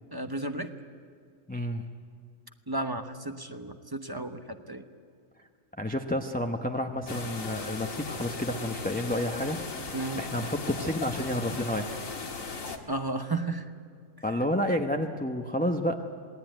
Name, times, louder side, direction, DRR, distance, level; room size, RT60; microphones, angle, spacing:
voice 1, 0.1-0.7 2.7-4.9 9.9-10.3 12.9-13.7, right 2 dB, 20° right, 7 dB, 0.9 m, -33 dB
voice 2, 1.5-1.9 5.8-9.6 10.2-11.9 14.2-16.1, left 1 dB, 10° left, 4 dB, 0.9 m, -30 dB
sound 1, 7.1-12.8, left 4 dB, 85° left, 2.1 m, -37 dB
27.5 x 19.0 x 9.2 m, 2.1 s
omnidirectional pair, 1.3 m